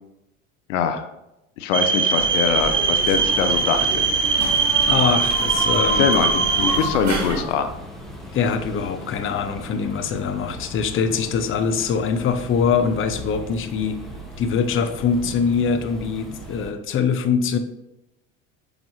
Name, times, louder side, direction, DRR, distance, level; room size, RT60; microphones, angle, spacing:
voice 1, 0.7-1.1 1.6-4.1 6.0-7.7, left 7 dB, 75° left, 9 dB, 0.8 m, -23 dB
sound 1, 1.7-6.8, right 5 dB, 30° right, 1.2 m, -21 dB
sound 2, 2.1-7.4, right 2 dB, 45° right, 1.5 m, -29 dB
sound 3, 3.2-16.7, equal, ahead, 1.4 m, -38 dB
voice 2, 4.9-6.1 8.3-14.0 14.4-17.6, left 6 dB, 35° left, 8 dB, 0.7 m, -23 dB
6.3 x 5.1 x 3.2 m, 0.89 s
hypercardioid pair, 80°, 37 cm